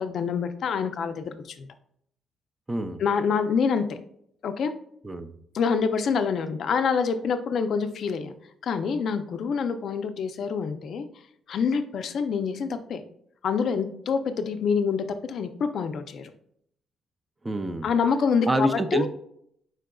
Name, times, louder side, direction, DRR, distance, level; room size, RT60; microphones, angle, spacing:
voice 1, 0.0-1.7 3.0-4.0 4.4-4.7 5.5-8.3 8.6-11.1 11.5-13.0 13.4-16.3 17.8-19.1, left 6 dB, 55° left, 9 dB, 0.4 m, -26 dB
voice 2, 2.7-3.0 5.0-5.3 17.4-17.9 18.5-19.1, right 1 dB, 15° right, 8 dB, 0.4 m, -26 dB
4.8 x 4.4 x 2.3 m, 0.70 s
cardioid pair, 145°, 0 cm